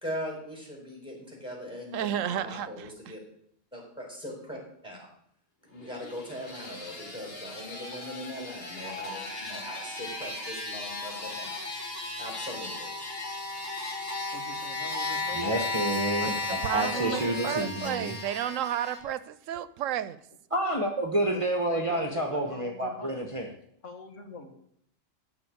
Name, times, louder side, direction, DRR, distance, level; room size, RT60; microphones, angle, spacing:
voice 1, 0.0-3.2 3.7-4.6 4.8-5.1 5.7-11.6 12.2-12.9, equal, 5° right, 4.2 m, -40 dB
voice 2, 1.9-2.9 15.9-20.2, right 10 dB, 85° right, 1.0 m, -32 dB
sound 1, 5.8-19.0, left 2 dB, 50° left, 2.4 m, -35 dB
voice 3, 14.3-15.4 16.8-17.6 21.3-23.4 23.8-24.5, left 4 dB, 75° left, 1.9 m, -44 dB
voice 4, 15.3-18.1 20.5-23.5, right 1 dB, 25° right, 1.2 m, -29 dB
14.0 x 4.7 x 8.4 m
omnidirectional pair, 1.3 m